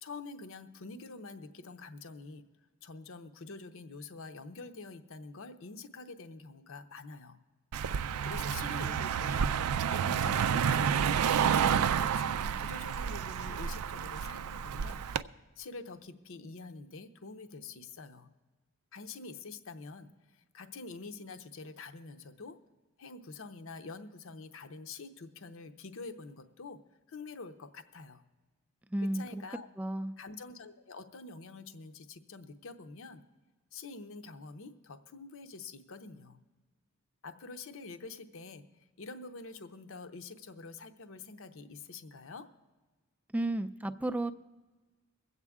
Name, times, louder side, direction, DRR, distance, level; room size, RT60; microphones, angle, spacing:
voice 1, 0.0-2.4 2.8-7.4 8.2-9.5 9.9-15.0 15.6-18.3 18.9-22.6 23.0-26.8 27.1-28.2 29.0-29.7 30.2-33.2 33.7-36.4 37.2-38.6 39.0-42.4, left 3 dB, 65° left, 8 dB, 0.7 m, -46 dB
Car passing by, 7.7-15.2, right 7 dB, 90° right, 0.4 m, -30 dB
voice 2, 28.9-29.4 29.8-30.1 43.3-44.3, right 1 dB, 5° right, 10 dB, 0.4 m, -33 dB
23.0 x 8.1 x 3.6 m, 1.3 s
head